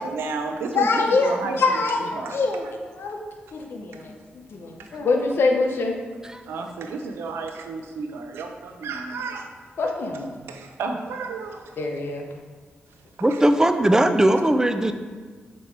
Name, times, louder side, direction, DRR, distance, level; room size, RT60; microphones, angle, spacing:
voice 1, 0.0-0.9 1.2-2.4 4.8-4.9 6.5-9.5 9.9-10.0 10.5-11.7 13.3-13.4 14.3-14.4, right 4 dB, 85° right, 5 dB, 0.6 m, -32 dB
voice 2, 0.7-3.2 3.5-4.1 4.5-6.0 9.8-10.3 11.8-12.3, left 3 dB, 70° left, 2 dB, 0.8 m, -24 dB
voice 3, 13.2-14.9, right 1 dB, 15° right, 8 dB, 0.5 m, -19 dB
7.1 x 3.1 x 4.6 m, 1.5 s
cardioid pair, 55°, 4 cm